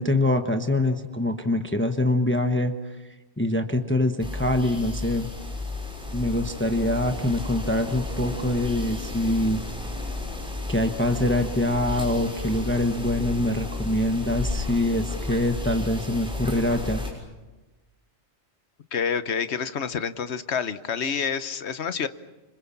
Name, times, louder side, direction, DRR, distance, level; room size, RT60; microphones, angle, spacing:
voice 1, 0.0-2.7 3.4-5.3 6.1-9.6 10.7-17.0, left 1 dB, 10° left, 6 dB, 1.1 m, -24 dB
sound 1, 4.2-17.1, left 2 dB, 5° right, 6.3 m, -33 dB
voice 2, 18.9-22.1, left 6 dB, 75° left, 12 dB, 1.3 m, -28 dB
26.0 x 26.0 x 7.2 m, 1.1 s
omnidirectional pair, 1.1 m